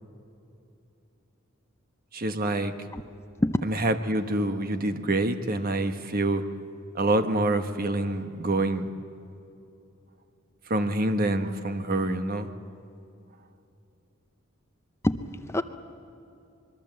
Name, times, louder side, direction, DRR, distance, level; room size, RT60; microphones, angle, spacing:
voice 1, 2.1-2.7 3.6-6.4 6.9-8.9 10.7-12.5, right 2 dB, 45° right, 8 dB, 1.2 m, -26 dB
voice 2, 15.0-15.6, left 1 dB, 15° left, 9 dB, 0.6 m, -25 dB
25.0 x 22.5 x 7.6 m, 2.7 s
head